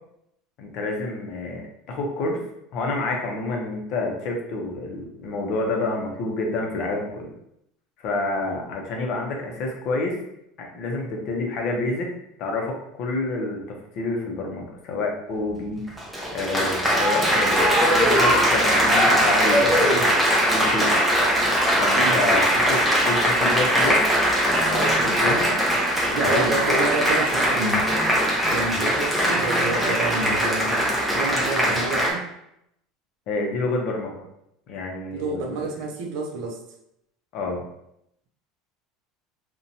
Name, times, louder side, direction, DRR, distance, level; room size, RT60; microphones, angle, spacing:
voice 1, 0.6-2.4 2.7-7.3 8.0-10.2 10.6-12.1 12.4-15.8 16.3-19.9 20.5-21.0 21.8-24.0 24.7-25.6 26.1-26.8 33.3-34.2 34.7-35.6 37.3-37.6, left 2 dB, 50° left, 1 dB, 0.6 m, -28 dB
Applause, 15.9-32.1, equal, ahead, 0.5 m, -20 dB
voice 2, 26.1-27.9 28.5-30.8 31.1-32.3 35.1-36.6, right 3 dB, 60° right, 2 dB, 0.4 m, -29 dB
2.7 x 2.1 x 2.6 m, 0.79 s
cardioid pair, 150°, 0 cm